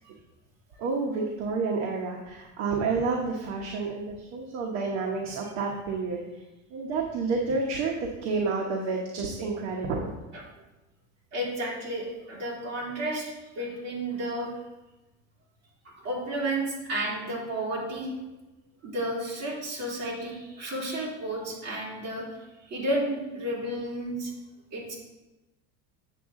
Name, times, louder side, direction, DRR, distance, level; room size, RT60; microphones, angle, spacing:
voice 1, 0.8-6.2 6.7-8.0 8.2-10.1, right 4 dB, 45° right, 0 dB, 1.1 m, -29 dB
voice 2, 11.3-14.5 16.0-18.1 18.8-24.3 24.7-24.9, right 1 dB, 25° right, -6 dB, 2.8 m, -32 dB
8.1 x 7.1 x 3.7 m, 1.1 s
cardioid pair, 170°, 37 cm